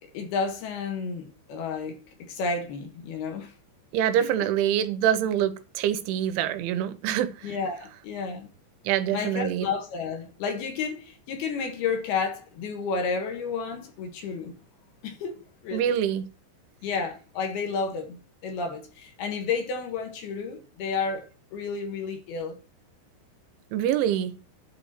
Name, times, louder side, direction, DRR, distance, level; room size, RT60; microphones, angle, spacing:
voice 1, 0.0-3.5 4.2-4.3 7.4-8.5 9.1-14.6 15.0-15.9 16.8-22.6, left 5 dB, 65° left, 3.2 m, -31 dB
voice 2, 3.9-7.6 8.8-9.7 15.7-16.2 23.7-24.3, right 10 dB, 85° right, 3.4 m, -25 dB
11.5 x 4.2 x 7.2 m
omnidirectional pair, 5.3 m